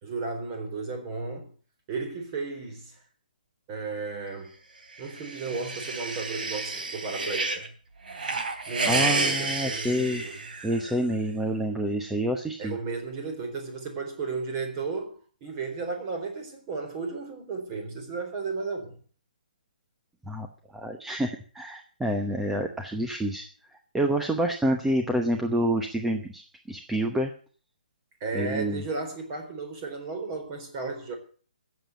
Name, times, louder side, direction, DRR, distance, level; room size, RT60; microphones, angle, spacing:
voice 1, 0.0-1.5 1.9-3.0 3.7-4.6 5.0-7.7 8.7-10.3 12.6-19.0 28.2-31.2, right 4 dB, 25° right, 3.9 m, -34 dB
sound 1, 5.0-7.7 8.1-10.9, right 3 dB, 65° right, 3.3 m, -30 dB
voice 2, 8.8-10.2 10.6-12.8 20.3-20.5 20.7-23.4 23.9-26.4 26.7-27.3 28.3-28.8, right 1 dB, 5° right, 0.9 m, -28 dB
15.0 x 7.7 x 8.1 m
hypercardioid pair, 155°, 5 cm